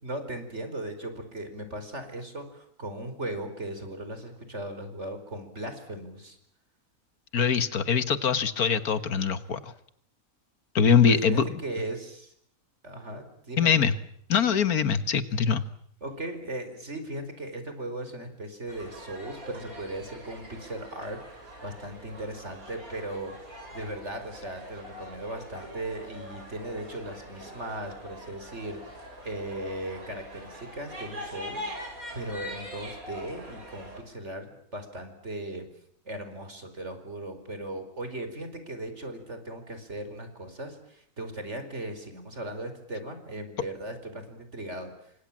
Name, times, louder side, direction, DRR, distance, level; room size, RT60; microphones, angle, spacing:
voice 1, 0.0-6.4 11.0-12.3 12.8-13.9 16.0-35.7 36.0-45.1, right 1 dB, 50° right, 8 dB, 5.1 m, -38 dB
voice 2, 7.3-9.7 10.8-11.4 13.6-13.9 14.3-15.6, left 6 dB, 80° left, 12 dB, 1.9 m, -23 dB
sound 1, 18.7-34.0, equal, 70° right, 7.0 m, -43 dB
29.0 x 25.5 x 7.5 m, 0.68 s
omnidirectional pair, 1.6 m